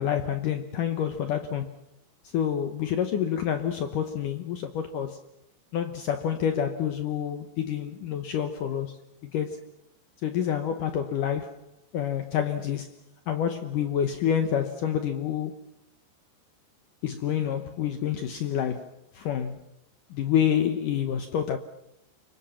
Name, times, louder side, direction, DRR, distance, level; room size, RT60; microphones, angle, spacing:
voice 1, 0.0-1.7 2.3-5.2 5.7-9.0 9.2-9.6 10.2-11.6 11.9-12.9 13.3-15.5 17.0-19.6 20.1-21.6, left 9 dB, 70° left, 2.1 m, -28 dB
29.0 x 25.0 x 5.8 m
omnidirectional pair, 4.9 m